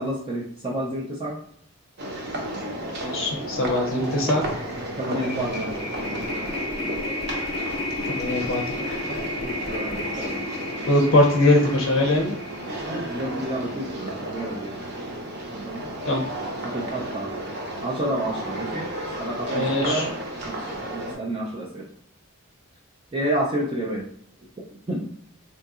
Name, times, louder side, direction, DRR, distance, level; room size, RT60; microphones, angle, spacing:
voice 1, 0.0-1.4 5.0-5.8 9.4-10.4 12.8-14.8 15.6-15.8 16.6-17.4 17.8-20.1 20.5-21.9 23.1-24.1 24.9-25.0, right 1 dB, 25° right, -3 dB, 0.3 m, -30 dB
sound 1, 2.0-21.1, right 1 dB, 50° right, 0.7 m, -33 dB
voice 2, 3.0-4.4 8.1-8.9 10.9-12.3 16.1-16.2 19.5-20.1, left 1 dB, 60° left, 1 dB, 0.5 m, -21 dB
sound 2, 3.5-3.6 3.9-14.2, left 2 dB, ahead, 0.7 m, -33 dB
3.8 x 2.7 x 2.3 m, 0.65 s
head